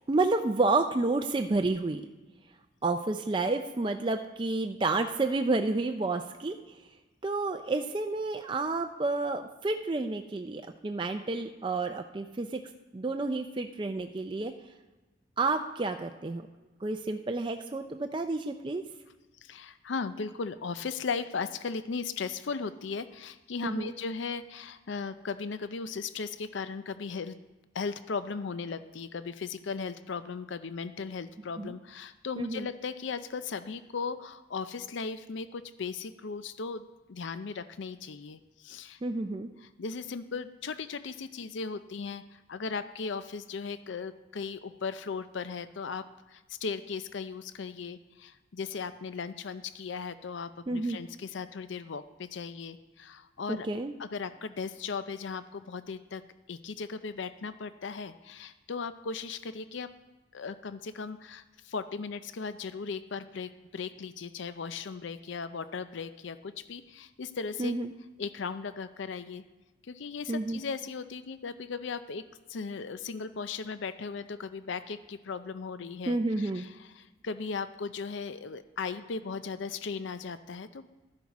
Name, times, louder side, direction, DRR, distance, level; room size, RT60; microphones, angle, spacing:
voice 1, 0.1-2.0 2.8-6.6 7.2-12.6 12.9-14.5 15.4-16.5 16.8-18.8 23.6-23.9 31.6-31.7 32.4-32.7 39.0-39.5 50.7-51.0 53.5-53.9 67.6-67.9 70.3-70.6 76.1-76.6, right 3 dB, 25° right, 5 dB, 0.4 m, -30 dB
voice 2, 19.4-27.4 27.7-39.0 39.6-53.7 54.0-56.2 56.5-59.9 60.3-67.7 68.2-69.4 69.8-72.2 72.5-80.9, left 5 dB, 65° left, 12 dB, 0.5 m, -37 dB
12.5 x 10.5 x 4.1 m, 1.2 s
head